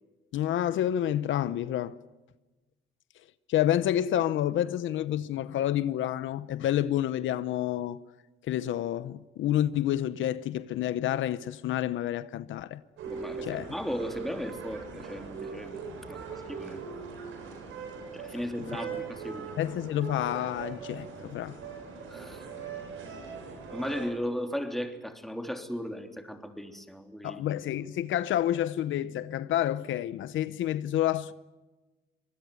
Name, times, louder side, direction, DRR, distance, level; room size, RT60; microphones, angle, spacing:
voice 1, 0.3-2.0 3.5-8.0 8.4-12.8 13.4-13.7 19.6-21.6 27.2-31.3, left 12 dB, 75° left, 0.9 m, -29 dB
voice 2, 13.0-16.8 18.1-19.5 22.1-22.5 23.7-27.4, equal, ahead, 3.3 m, -36 dB
sound 1, 13.0-24.1, right 5 dB, 85° right, 7.5 m, -41 dB
24.5 x 19.5 x 9.4 m
cardioid pair, 90°, 20 cm